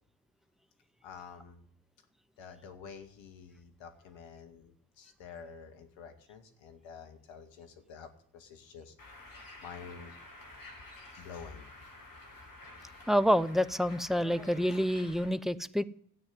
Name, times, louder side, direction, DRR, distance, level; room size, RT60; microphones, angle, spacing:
voice 1, 1.0-1.7 2.4-8.9 9.6-10.2 11.1-11.7, left 6 dB, 65° left, 8 dB, 2.2 m, -49 dB
Bird, 9.0-15.3, left 2 dB, 40° left, 5.5 m, -51 dB
voice 2, 13.1-15.8, equal, ahead, 14 dB, 0.8 m, -28 dB
13.5 x 9.0 x 9.5 m, 0.62 s
hypercardioid pair, 50°, 49 cm